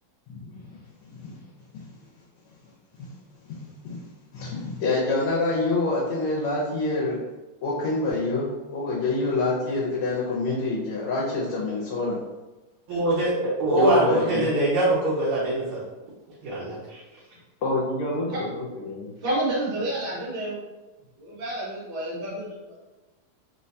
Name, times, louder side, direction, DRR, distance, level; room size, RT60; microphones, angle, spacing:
voice 1, 1.0-1.3 1.7-1.8 3.0-3.1 3.5-3.6 3.8-4.0 4.3-7.2 7.6-12.2 13.7-14.5 17.6-19.1, left 2 dB, 80° left, -5 dB, 1.5 m, -26 dB
voice 2, 12.9-15.8 16.4-17.0, right 2 dB, 80° right, -6 dB, 1.5 m, -23 dB
voice 3, 19.2-20.6 21.2-22.8, right 1 dB, 55° right, -5 dB, 1.4 m, -29 dB
3.8 x 2.2 x 2.6 m, 1.1 s
omnidirectional pair, 2.4 m